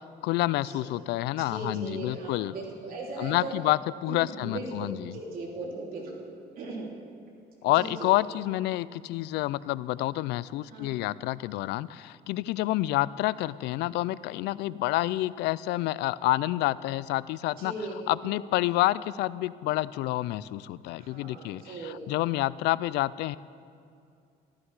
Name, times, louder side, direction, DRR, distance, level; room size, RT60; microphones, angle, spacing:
voice 1, 0.2-2.5 3.2-5.2 7.6-23.4, left 16 dB, 85° left, 19 dB, 0.4 m, -28 dB
voice 2, 1.5-3.6 4.1-6.3 6.6-6.9 7.7-8.1 10.7-10.9 17.6-18.0 21.0-22.0, right 3 dB, 60° right, -2 dB, 3.2 m, -38 dB
14.5 x 13.0 x 4.8 m, 2.4 s
cardioid pair, 110°, 17 cm